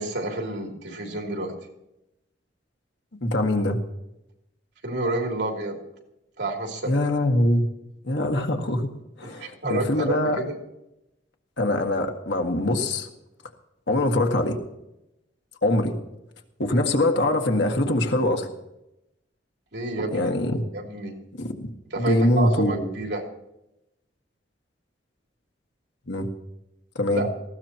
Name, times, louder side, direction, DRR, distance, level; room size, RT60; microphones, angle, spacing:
voice 1, 0.0-1.5 4.8-5.8 6.4-6.9 9.2-10.5 19.7-20.3 20.7-21.2 21.9-23.2 27.1-27.3, right 2 dB, 75° right, 1 dB, 3.1 m, -29 dB
voice 2, 3.2-3.8 6.9-7.7 8.0-8.9 9.2-10.4 11.6-13.1 13.9-14.6 15.6-16.0 16.6-18.5 20.1-20.6 21.4-21.7 22.0-22.9 26.1-26.3 27.0-27.2, left 1 dB, 75° left, 3 dB, 1.8 m, -23 dB
19.0 x 15.0 x 3.0 m, 0.87 s
head